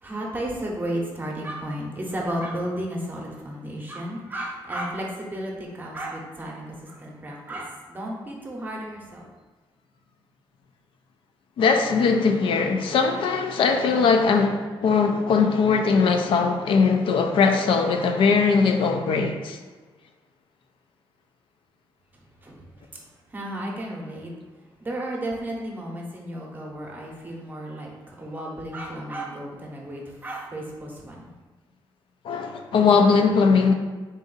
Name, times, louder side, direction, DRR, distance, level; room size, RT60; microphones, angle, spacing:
voice 1, 0.0-9.3 22.4-22.6 23.3-24.3 24.8-31.3, right 1 dB, 20° right, 0.7 m, -33 dB
voice 2, 11.6-19.6 32.2-33.7, left 5 dB, 65° left, 0.4 m, -20 dB
3.9 x 2.5 x 3.9 m
wide cardioid pair, 150°, 9 cm